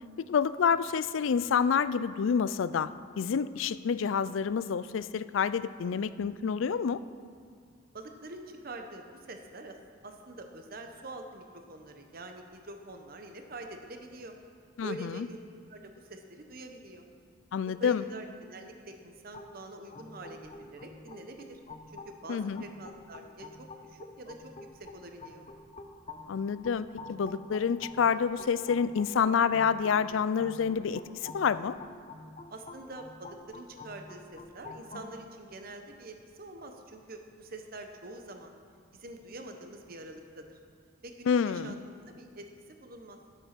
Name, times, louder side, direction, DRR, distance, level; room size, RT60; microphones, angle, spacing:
voice 1, 0.2-2.9 3.2-7.0 14.8-15.3 17.5-18.0 22.3-22.6 26.3-31.8 41.3-41.7, left 6 dB, 70° left, 15 dB, 0.4 m, -28 dB
voice 2, 7.9-9.8 10.0-14.4 14.8-15.4 15.7-17.1 17.8-21.6 21.9-25.5 32.5-38.6 38.9-40.6 41.0-43.2, right 2 dB, 45° right, 5 dB, 0.9 m, -45 dB
sound 1, 19.3-35.1, left 3 dB, 35° left, 0.7 m, -48 dB
11.5 x 8.0 x 5.9 m, 2.2 s
head